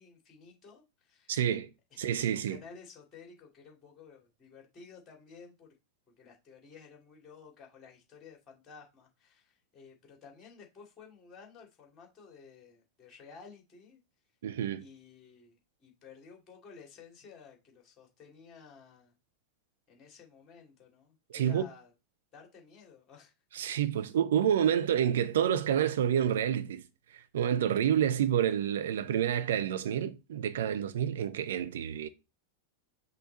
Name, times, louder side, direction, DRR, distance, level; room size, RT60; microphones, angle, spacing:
voice 1, 0.0-1.4 1.9-5.7 6.2-14.0 14.8-19.1 19.9-21.9 22.3-23.3 24.0-24.1, left 5 dB, 25° left, 2.7 m, -54 dB
voice 2, 1.3-1.7 2.0-2.6 14.4-14.8 21.3-21.6 23.5-26.8 27.1-32.1, right 9 dB, 60° right, 0.7 m, -28 dB
5.7 x 3.9 x 4.2 m
figure-of-eight pair, 90°, 0 cm